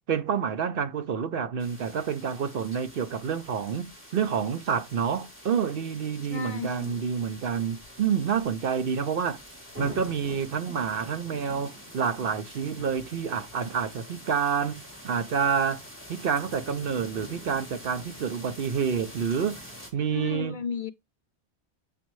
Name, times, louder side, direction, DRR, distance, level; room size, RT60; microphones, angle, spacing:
voice 1, 0.1-9.4 9.8-15.8 16.1-19.6 19.9-20.6, right 7 dB, 60° right, 0.8 m, -28 dB
sound 1, 1.6-19.9, equal, 10° right, 2.3 m, -46 dB
voice 2, 6.3-7.0 20.1-20.9, left 6 dB, 55° left, 0.6 m, -34 dB
8.6 x 6.2 x 3.1 m
omnidirectional pair, 1.1 m